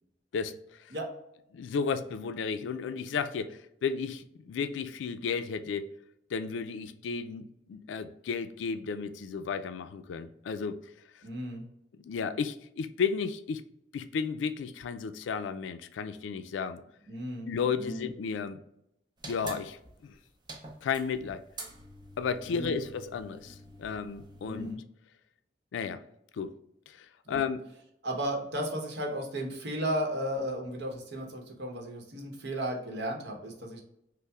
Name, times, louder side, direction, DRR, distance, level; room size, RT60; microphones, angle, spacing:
voice 1, 0.3-0.9 1.5-5.9 6.3-10.8 11.1-11.2 12.0-13.6 13.9-16.8 17.5-18.6 19.2-20.2 20.8-21.5 22.2-24.7 25.7-26.0 26.3-26.5 26.9-27.6, left 6 dB, 90° left, 11 dB, 0.3 m, -33 dB
voice 2, 11.2-11.6 17.1-17.5 17.8-18.1 22.5-22.8 24.4-24.8 27.3-27.4 28.0-33.8, equal, 65° right, 1 dB, 0.9 m, -34 dB
sound 1, 19.2-24.7, right 2 dB, 25° right, 0.6 m, -47 dB
5.4 x 2.0 x 2.3 m, 0.79 s
head